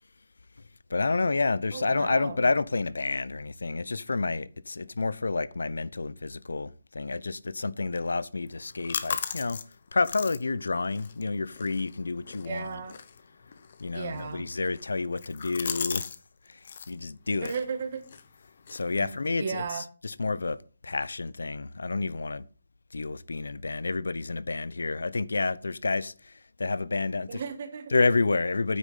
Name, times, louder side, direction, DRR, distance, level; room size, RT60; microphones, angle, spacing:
voice 1, 0.9-9.6 9.9-12.8 13.8-16.0 16.5-17.5 18.7-20.6 20.8-22.4 22.9-27.4 27.9-28.8, left 3 dB, 85° left, 0.8 m, -29 dB
voice 2, 1.7-2.4 12.4-13.0 13.9-14.4 17.4-18.1 19.0-19.1 19.4-19.9 27.3-27.9, right 6 dB, 30° right, 1.6 m, -35 dB
sound 1, 8.5-16.2 16.5-16.9 17.4-19.7, left 6 dB, 35° left, 0.9 m, -39 dB
9.4 x 8.4 x 5.7 m
hypercardioid pair, 175°, 0 cm